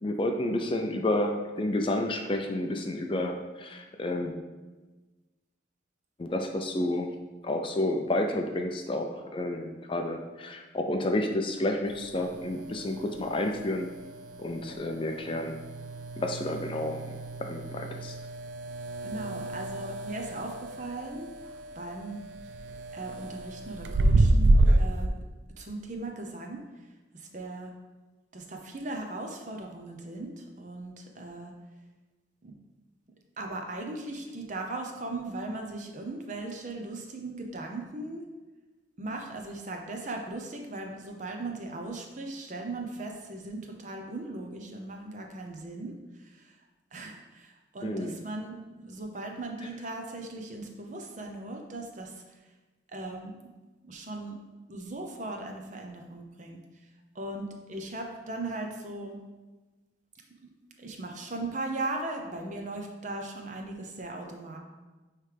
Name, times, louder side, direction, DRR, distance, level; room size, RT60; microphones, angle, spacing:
voice 1, 0.0-4.3 6.2-7.2 7.4-13.9 14.4-15.6 16.2-17.0 17.4-18.1 47.8-48.2 49.6-49.7, left 1 dB, 30° left, 4 dB, 0.4 m, -30 dB
sound 1, 11.9-25.1, right 2 dB, 75° right, 0.4 m, -29 dB
voice 2, 19.0-21.3 21.7-22.2 22.9-25.1 25.6-26.6 27.1-27.7 28.3-31.5 32.4-32.5 33.4-38.2 39.0-45.9 46.2-46.5 46.9-52.2 52.9-53.3 53.9-54.4 54.7-56.6 57.1-59.2 60.4-60.5 60.8-64.6, right 2 dB, 40° right, 2 dB, 0.7 m, -38 dB
9.2 x 3.2 x 3.4 m, 1.2 s
head